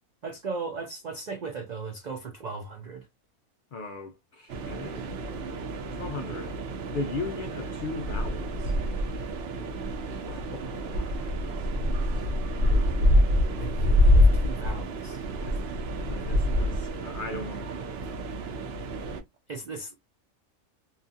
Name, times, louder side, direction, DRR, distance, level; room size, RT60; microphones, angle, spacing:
voice 1, 0.2-3.1 13.5-15.2 19.5-20.0, right 4 dB, 80° right, 0.4 m, -37 dB
voice 2, 3.7-5.2 5.9-6.5 6.9-8.8 10.3-11.5 12.0-12.3 12.6-13.2 15.5-15.6 16.0-17.7 18.1-18.2, left 3 dB, 90° left, 0.4 m, -38 dB
sound 1, 4.5-19.2, left 1 dB, 60° right, 0.7 m, -26 dB
2.7 x 2.4 x 2.6 m
omnidirectional pair, 1.4 m